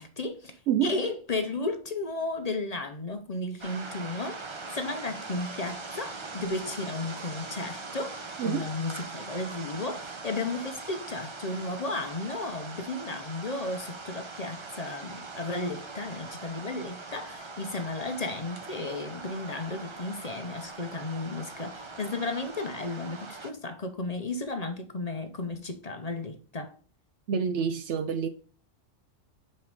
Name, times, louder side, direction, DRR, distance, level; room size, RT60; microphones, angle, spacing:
voice 1, 0.0-4.4 4.7-26.8, left 2 dB, 40° left, 0.7 m, -34 dB
sound 1, 3.6-23.5, right 3 dB, 30° right, 0.6 m, -41 dB
voice 2, 27.3-28.3, right 7 dB, 70° right, 0.9 m, -27 dB
5.3 x 4.3 x 4.7 m
omnidirectional pair, 1.3 m